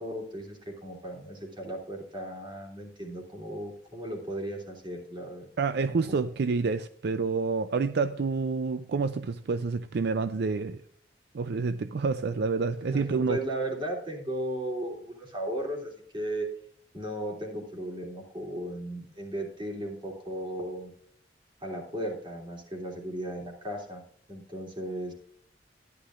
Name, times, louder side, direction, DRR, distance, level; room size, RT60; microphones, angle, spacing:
voice 1, 0.0-5.4 6.0-6.1 12.9-16.5 16.9-20.9 21.6-24.0 24.3-25.1, right 1 dB, 25° right, 3.1 m, -36 dB
voice 2, 5.6-10.8 11.3-13.4, right 4 dB, 60° right, 0.4 m, -28 dB
13.0 x 11.0 x 2.5 m
head